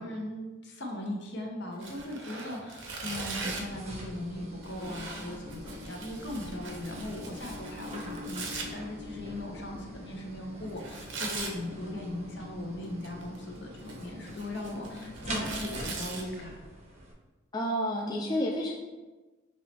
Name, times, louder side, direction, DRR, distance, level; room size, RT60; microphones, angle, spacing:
voice 1, 0.0-16.6, left 1 dB, 60° left, 1 dB, 0.8 m, -39 dB
Tearing, 1.8-3.8 4.6-8.7 10.8-11.6 12.8-13.4 13.8-16.2, right 3 dB, 70° right, 0.7 m, -40 dB
sound 1, 3.2-17.1, equal, 35° right, 0.6 m, -43 dB
voice 2, 17.5-18.7, equal, 20° left, -2 dB, 0.3 m, -30 dB
5.5 x 3.0 x 2.9 m, 1.2 s
head